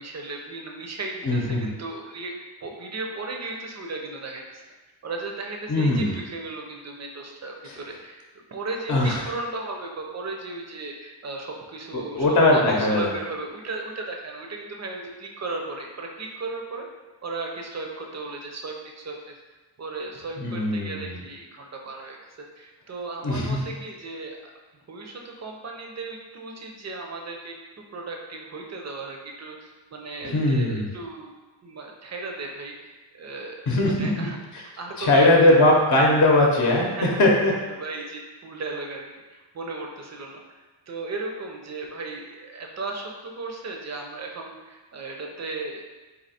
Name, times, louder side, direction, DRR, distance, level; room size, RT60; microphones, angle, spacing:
voice 1, 0.0-2.4 2.6-4.6 5.0-8.2 8.5-12.3 12.5-16.9 17.2-19.4 19.8-24.4 24.9-31.3 31.6-35.5 36.9-37.3 37.6-40.4 40.9-45.8, right 3 dB, 35° right, 1 dB, 0.7 m, -36 dB
voice 2, 1.2-1.7 5.7-6.1 8.9-9.1 11.9-13.1 20.4-21.2 23.2-23.6 30.2-30.8 33.7-34.3 35.0-37.5, left 1 dB, 40° left, -2 dB, 0.8 m, -20 dB
4.2 x 2.9 x 4.2 m, 1.2 s
wide cardioid pair, 125°, 44 cm